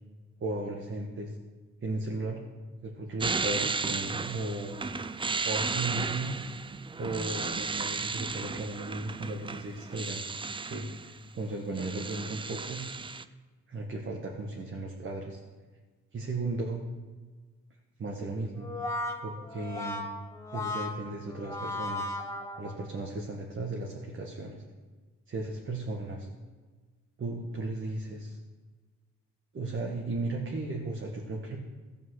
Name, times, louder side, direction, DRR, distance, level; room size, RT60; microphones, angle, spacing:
voice 1, 0.4-1.3 1.8-2.4 2.8-4.8 5.4-6.3 7.0-10.2 10.6-12.8 13.7-15.4 16.1-16.8 18.0-18.7 19.2-20.1 20.5-22.2 22.6-24.6 25.3-26.3 27.2-28.4 29.5-31.6, right 2 dB, 40° right, -1 dB, 1.6 m, -35 dB
sound 1, 3.2-11.2 11.5-13.2, right 4 dB, 15° right, 0.4 m, -34 dB
Brass instrument, 18.5-23.0, left 2 dB, 10° left, 1.8 m, -36 dB
15.0 x 5.4 x 6.5 m, 1.4 s
cardioid pair, 90°, 30 cm